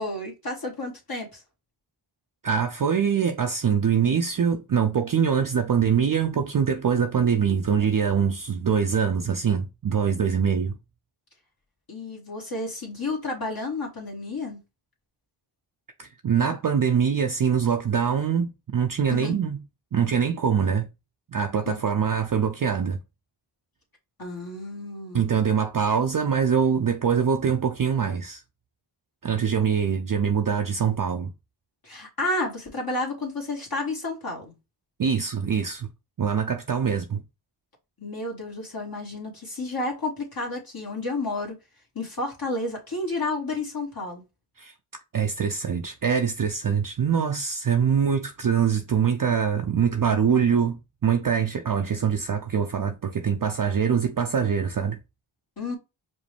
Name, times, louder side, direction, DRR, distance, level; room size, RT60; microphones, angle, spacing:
voice 1, 0.0-1.4 11.9-14.6 19.1-19.3 21.6-21.8 24.2-25.3 31.8-34.5 38.0-41.5 41.9-44.2 55.6-55.8, left 2 dB, 45° left, 1.5 m, -31 dB
voice 2, 2.4-10.8 16.0-19.6 19.9-20.9 21.3-23.0 25.1-28.4 29.2-31.3 35.0-35.9 36.2-37.2 44.6-44.7 45.1-55.0, right 7 dB, 45° right, 0.6 m, -24 dB
5.1 x 2.1 x 3.3 m
cardioid pair, 40°, 49 cm